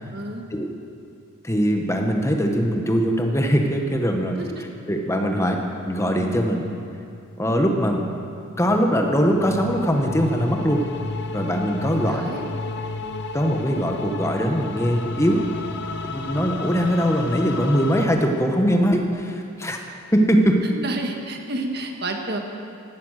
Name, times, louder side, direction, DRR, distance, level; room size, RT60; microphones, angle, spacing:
voice 1, 0.1-0.4 4.4-4.6 5.4-5.5 12.1-12.4 20.6-22.4, right 2 dB, 50° right, 3 dB, 1.5 m, -30 dB
voice 2, 1.4-4.4 4.9-5.6 5.9-6.7 7.4-8.0 8.6-10.8 11.3-12.2 13.3-15.4 16.1-19.8 20.1-20.6, equal, 15° left, 3 dB, 1.2 m, -21 dB
sound 1, 8.7-18.1, left 3 dB, 55° left, 0.8 m, -32 dB
14.5 x 11.5 x 6.5 m, 2.5 s
head